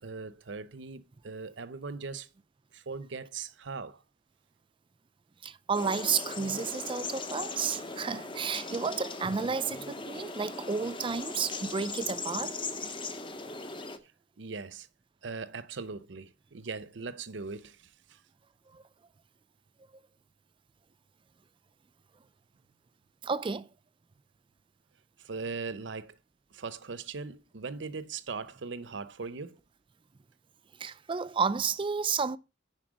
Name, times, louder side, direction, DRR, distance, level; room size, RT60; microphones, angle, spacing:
voice 1, 0.0-2.3 2.7-4.0 14.4-14.9 15.2-17.8 18.1-18.2 25.2-26.2 26.5-29.6, right 4 dB, 70° right, 0.7 m, -39 dB
voice 2, 5.4-12.6 18.7-18.8 23.2-23.7 30.8-32.4, right 5 dB, 25° right, 0.4 m, -31 dB
sound 1, 5.7-14.0, left 3 dB, 25° left, 0.8 m, -39 dB
10.0 x 4.3 x 6.3 m
head